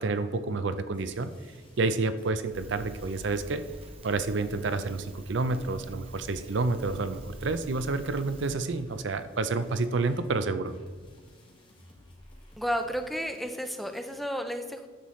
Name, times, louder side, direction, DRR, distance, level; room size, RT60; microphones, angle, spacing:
voice 1, 0.0-1.3 1.8-3.6 4.0-10.7, right 3 dB, 65° right, 11 dB, 0.5 m, -29 dB
sound 1, 0.9-14.2, left 1 dB, 25° left, 1.5 m, -55 dB
Crackle, 2.5-8.6, right 1 dB, 30° right, 0.9 m, -47 dB
voice 2, 12.6-14.9, equal, ahead, 6 dB, 0.4 m, -32 dB
10.0 x 7.3 x 3.1 m, 1.5 s
head